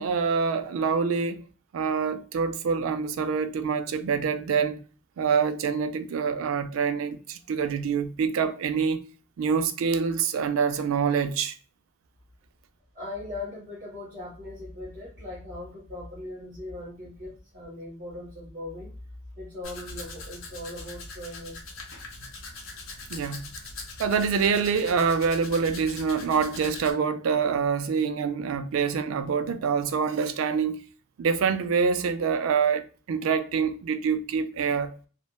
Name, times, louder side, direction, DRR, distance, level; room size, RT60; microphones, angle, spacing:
voice 1, 0.0-1.5 1.7-4.8 5.2-9.0 9.4-11.6 23.1-23.5 24.0-30.8 31.2-34.9, right 6 dB, 75° right, 0.4 m, -26 dB
voice 2, 12.9-18.9 19.4-21.6, left 2 dB, 35° right, 1.4 m, -39 dB
Domestic sounds home sounds, 19.6-26.9, left 3 dB, 75° left, 0.7 m, -42 dB
3.1 x 2.1 x 2.2 m
head